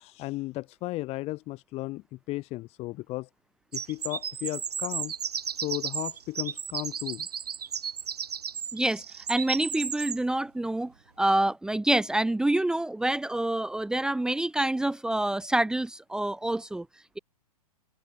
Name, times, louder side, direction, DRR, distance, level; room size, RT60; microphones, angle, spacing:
voice 1, 0.0-3.3 3.7-5.1 5.6-7.3, left 19 dB, 30° left, 4.5 m, -35 dB
sound 1, 3.7-10.2, right 7 dB, 80° right, 1.8 m, -34 dB
voice 2, 8.7-16.9, right 1 dB, 5° right, 1.5 m, -27 dB
hypercardioid pair, 125°, 20 cm